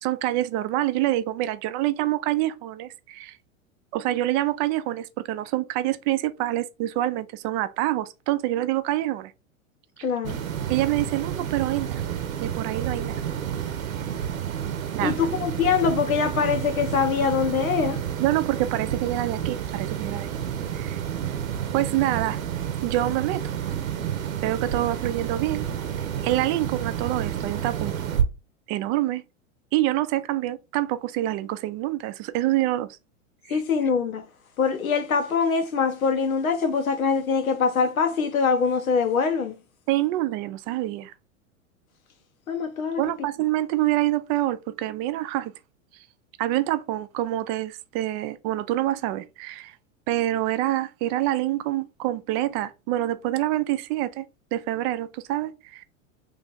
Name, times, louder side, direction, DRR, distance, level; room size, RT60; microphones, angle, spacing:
voice 1, 0.0-3.4 3.9-9.3 10.0-10.1 10.7-12.0 12.4-13.2 14.9-15.1 18.2-20.3 20.7-21.0 21.7-22.4 22.8-23.4 24.4-25.7 26.2-27.9 28.7-29.2 29.7-33.0 33.5-33.6 39.9-41.1 43.0-45.5 46.4-49.7 50.1-54.3 54.5-55.8, right 15 dB, 35° right, 0.4 m, -26 dB
voice 2, 10.0-10.4 15.0-18.0 33.5-34.2 34.6-39.5 42.5-43.0, left 5 dB, 90° left, 0.8 m, -23 dB
sound 1, 10.2-28.2, right 9 dB, 75° right, 0.8 m, -30 dB
3.3 x 2.5 x 3.8 m
hypercardioid pair, 95°, 41 cm